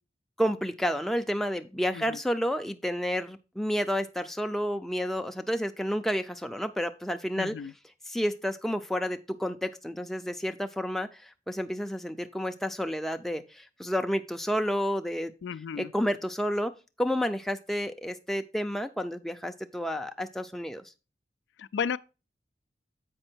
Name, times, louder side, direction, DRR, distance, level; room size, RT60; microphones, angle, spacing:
voice 1, 0.4-7.6 8.1-15.3 15.8-20.8, equal, ahead, 0.4 m, -30 dB
voice 2, 7.4-7.7 15.4-15.9 21.6-22.0, left 6 dB, 85° left, 0.3 m, -33 dB
7.7 x 5.4 x 4.4 m
head